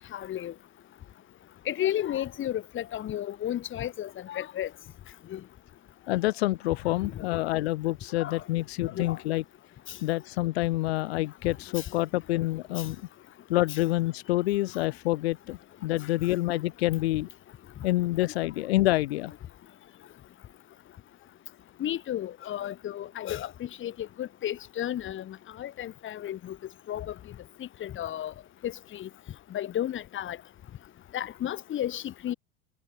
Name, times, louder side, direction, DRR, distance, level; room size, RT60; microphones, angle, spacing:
voice 1, 0.1-0.5 1.7-4.7 5.3-5.4 6.9-7.4 8.2-8.4 8.9-9.2 11.8-11.9 13.7-13.8 18.2-18.3 21.8-26.6 26.9-27.1 27.6-28.3 28.6-29.1 29.5-30.4 31.1-32.3, left 11 dB, 40° left, 2.0 m, -33 dB
voice 2, 6.1-9.4 10.0-13.0 13.5-17.3 17.8-19.3, left 17 dB, 75° left, 1.4 m, -27 dB
hypercardioid pair, 85°, 32 cm